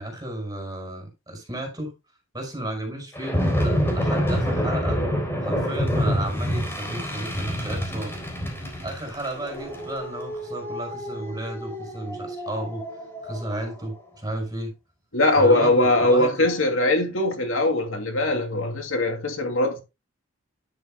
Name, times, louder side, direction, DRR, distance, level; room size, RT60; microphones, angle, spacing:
voice 1, 0.0-1.9 2.3-5.0 5.4-8.2 8.8-12.8 13.2-14.7 15.3-16.5, right 1 dB, 20° right, 5.1 m, -33 dB
sound 1, 3.1-13.7, equal, 10° left, 3.6 m, -27 dB
voice 2, 15.1-19.8, left 2 dB, 80° left, 2.7 m, -21 dB
11.0 x 9.7 x 2.2 m
head